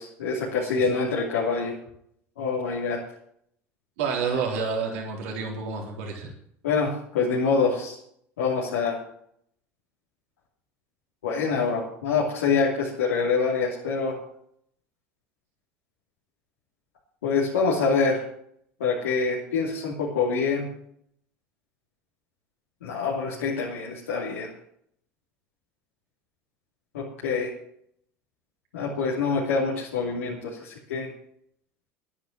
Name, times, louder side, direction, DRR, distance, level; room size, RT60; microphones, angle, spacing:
voice 1, 0.0-1.7 2.4-3.0 6.6-8.0 8.4-9.0 11.2-14.2 17.2-18.2 18.8-20.7 22.8-24.5 26.9-27.5 28.7-31.1, left 5 dB, 90° left, -5 dB, 2.9 m, -25 dB
voice 2, 4.0-6.3, right 5 dB, 80° right, 0 dB, 3.9 m, -29 dB
10.5 x 9.9 x 7.3 m, 0.68 s
hypercardioid pair, 85°, 7 cm